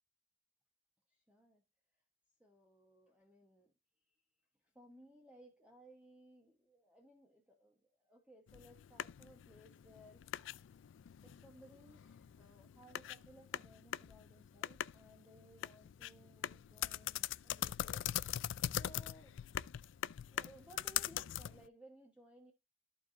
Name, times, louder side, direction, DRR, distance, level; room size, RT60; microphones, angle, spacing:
voice 1, 1.1-1.6 2.4-3.7 4.6-10.4 11.2-18.0 18.8-19.4 20.3-22.5, right 1 dB, 5° right, 1.1 m, -61 dB
sound 1, 8.5-21.7, left 11 dB, 65° left, 0.3 m, -42 dB
14.0 x 4.7 x 2.6 m
head